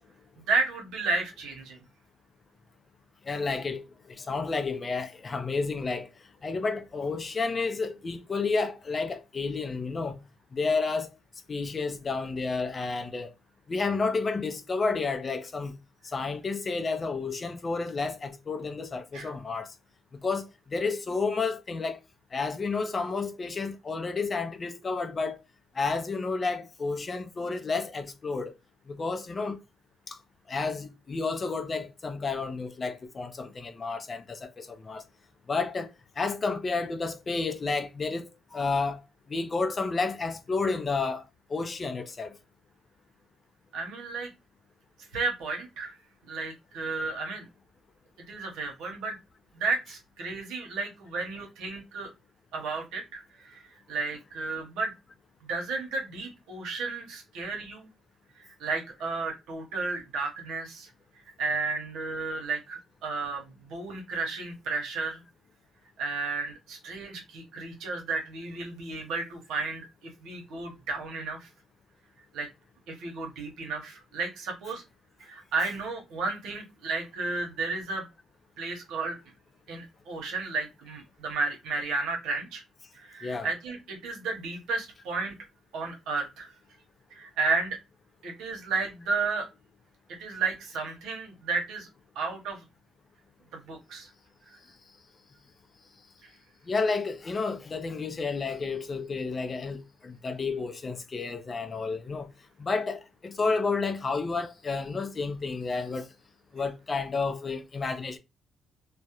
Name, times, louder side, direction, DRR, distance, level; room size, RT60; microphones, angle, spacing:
voice 1, 0.5-1.8 19.1-19.3 43.7-44.3 45.1-45.9 46.2-47.5 48.3-49.2 49.5-52.1 52.5-54.9 55.5-57.9 58.4-60.9 61.4-65.2 66.0-71.5 72.3-72.5 72.9-74.8 75.2-78.1 78.6-79.2 79.7-82.6 82.9-85.3 85.7-86.5 87.1-87.8 88.2-89.5 90.2-91.9 92.2-92.6 93.5-94.1 94.5-94.6 96.2-96.3, right 4 dB, 85° right, 0.8 m, -33 dB
voice 2, 3.3-6.1 6.4-10.2 10.5-11.1 11.5-13.3 13.7-15.8 16.0-19.7 20.2-22.0 22.3-25.4 25.8-28.5 28.9-29.6 30.1-30.2 30.5-35.0 35.5-35.9 36.2-39.0 39.3-41.2 41.5-42.3 74.7-74.8 75.6-75.7 83.2-83.5 96.7-102.3 102.6-106.1 106.5-108.2, left 4 dB, 35° left, 0.4 m, -31 dB
2.3 x 2.1 x 2.8 m
cardioid pair, 90°, 0 cm